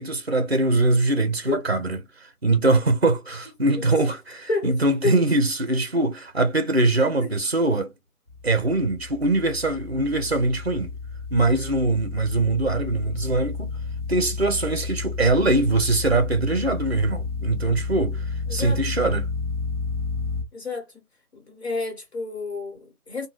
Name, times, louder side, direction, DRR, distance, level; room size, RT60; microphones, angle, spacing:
voice 1, 0.0-2.0 2.4-7.9 8.4-10.9 11.3-13.7 14.1-18.2 18.5-19.3, right 2 dB, 45° right, 0.6 m, -22 dB
sound 1, 8.3-20.4, left 4 dB, 25° left, 1.0 m, -31 dB
voice 2, 18.5-19.0 20.5-21.0 21.3-23.3, left 3 dB, 45° left, 1.3 m, -30 dB
2.6 x 2.3 x 3.1 m
figure-of-eight pair, 170°, 46 cm